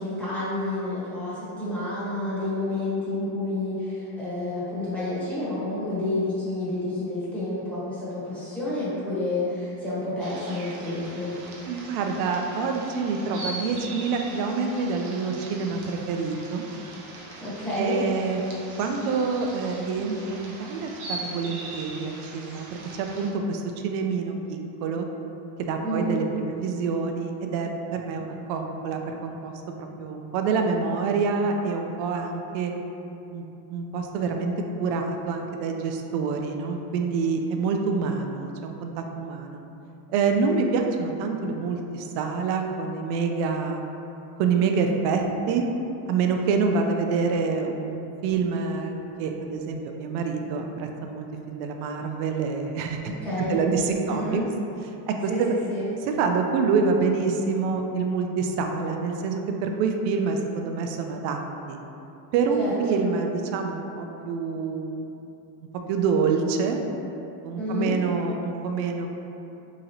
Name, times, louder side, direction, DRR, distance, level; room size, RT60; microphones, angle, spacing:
voice 1, 0.0-11.4 17.4-18.0 25.8-26.2 53.0-53.6 54.1-54.4 55.3-55.4 55.7-55.9 62.6-63.0 67.6-67.9, left 1 dB, 5° left, -12 dB, 1.1 m, -29 dB
sound 1, 10.2-23.3, right 2 dB, 45° right, 0.6 m, -41 dB
voice 2, 11.7-16.6 17.8-18.4 18.8-25.1 25.6-29.5 29.8-32.7 33.3-34.5 34.8-39.6 40.1-43.8 44.4-45.7 46.1-48.9 49.2-53.0 53.4-54.4 55.1-55.5 56.1-61.4 61.7-61.8 62.3-65.1 65.9-66.8 67.4-69.1, right 5 dB, 85° right, 4 dB, 0.5 m, -27 dB
3.8 x 3.0 x 2.8 m, 2.8 s
cardioid pair, 150°, 45 cm